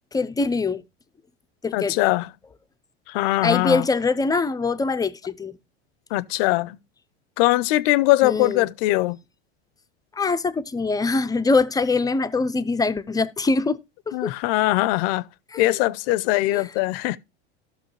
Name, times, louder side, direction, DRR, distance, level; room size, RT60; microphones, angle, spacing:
voice 1, 0.1-0.8 1.6-2.0 3.4-5.6 8.2-8.7 10.2-13.8 14.1-14.3 15.5-15.7 16.5-16.7, left 3 dB, 10° left, 0.5 m, -23 dB
voice 2, 1.7-2.3 3.1-3.8 6.1-6.8 7.4-9.2 14.1-15.3 15.6-17.2, left 18 dB, 60° left, 0.6 m, -21 dB
14.0 x 6.3 x 3.1 m
supercardioid pair, 110°, 32 cm